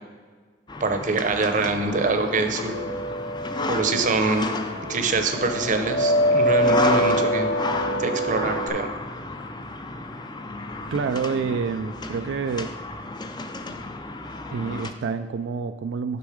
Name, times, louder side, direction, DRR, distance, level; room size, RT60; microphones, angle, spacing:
sound 1, 0.7-14.9, left 2 dB, 25° left, 0.4 m, -32 dB
voice 1, 0.8-2.8 3.6-4.5 4.9-7.5 8.0-8.9, right 3 dB, 45° right, 7 dB, 0.7 m, -24 dB
sound 2, 1.8-8.7, equal, 75° left, 1.3 m, -25 dB
voice 2, 10.9-12.7 14.5-16.2, right 5 dB, 90° right, 9 dB, 0.3 m, -28 dB
6.8 x 6.2 x 4.8 m, 1.5 s
head